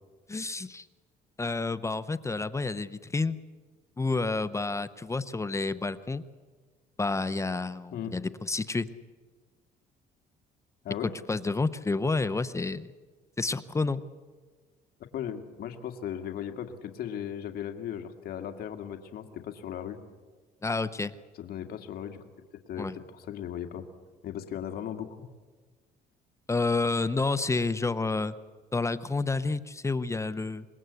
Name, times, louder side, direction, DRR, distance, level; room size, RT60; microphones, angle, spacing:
voice 1, 0.3-0.9 1.4-3.4 4.0-6.2 7.0-8.9 11.3-12.9 13.4-14.0 20.6-21.1 22.8-22.9 26.5-28.3 28.7-30.7, left 3 dB, 15° left, 14 dB, 0.8 m, -29 dB
voice 2, 15.1-20.0 21.3-22.2 22.5-23.8 24.2-25.3, left 9 dB, 65° left, 6 dB, 2.2 m, -37 dB
26.0 x 21.5 x 8.3 m, 1.4 s
cardioid pair, 110°, 17 cm